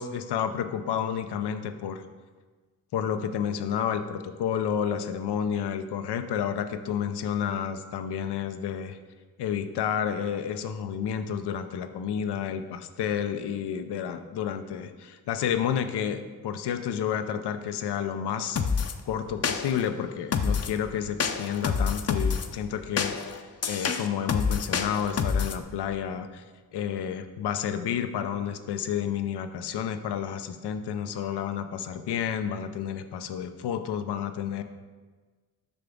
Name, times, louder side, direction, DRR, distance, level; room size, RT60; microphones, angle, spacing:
voice 1, 0.0-2.0 2.9-9.0 9.4-18.6 19.1-26.4 26.7-34.6, left 8 dB, 80° left, 8 dB, 0.6 m, -30 dB
sound 1, 18.6-18.9 19.4-19.9 20.3-20.8 21.2-22.5 23.0-25.6, left 6 dB, 40° left, 0.6 m, -27 dB
6.9 x 5.8 x 3.7 m, 1.4 s
supercardioid pair, 40°, 40 cm